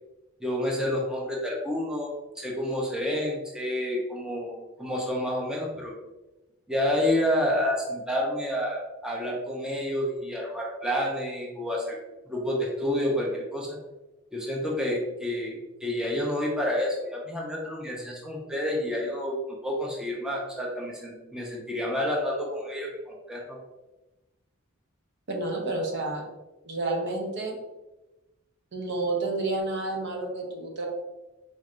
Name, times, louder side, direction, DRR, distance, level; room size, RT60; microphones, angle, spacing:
voice 1, 0.4-2.1 2.4-5.9 6.7-12.0 12.3-13.8 14.3-19.4 19.6-23.6, left 1 dB, 5° right, -3 dB, 0.6 m, -29 dB
voice 2, 25.3-26.2 26.6-27.6 28.7-30.9, right 2 dB, 55° right, 1 dB, 0.7 m, -30 dB
4.1 x 3.2 x 2.4 m, 1.1 s
head